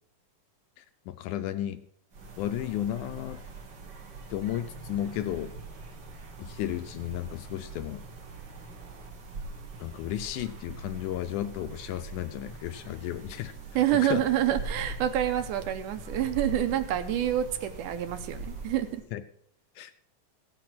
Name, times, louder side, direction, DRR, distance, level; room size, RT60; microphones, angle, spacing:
voice 1, 0.8-1.8 2.4-3.4 4.3-5.5 6.4-8.0 9.8-13.5 13.9-14.2 19.1-19.2 19.8-19.9, left 12 dB, 80° left, 9 dB, 1.9 m, -33 dB
sound 1, 2.1-19.1, right 3 dB, 60° right, 1.1 m, -42 dB
voice 2, 13.8-19.0, right 11 dB, 80° right, 8 dB, 2.2 m, -27 dB
16.0 x 6.0 x 5.9 m, 0.65 s
omnidirectional pair, 3.8 m